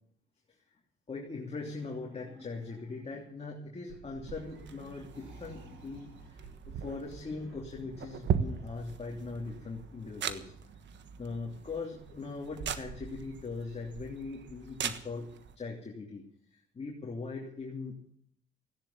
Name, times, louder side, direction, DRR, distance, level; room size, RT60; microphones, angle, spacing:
voice 1, 1.1-10.5 11.2-16.2 16.5-18.0, left 3 dB, 30° left, -1 dB, 3.1 m, -41 dB
sound 1, 1.6-3.3 3.9-8.8, right 2 dB, 90° right, 6.6 m, -52 dB
sound 2, 4.3-15.6, right 8 dB, 65° right, 1.4 m, -39 dB
15.5 x 10.5 x 8.6 m, 0.65 s
cardioid pair, 90°, 20 cm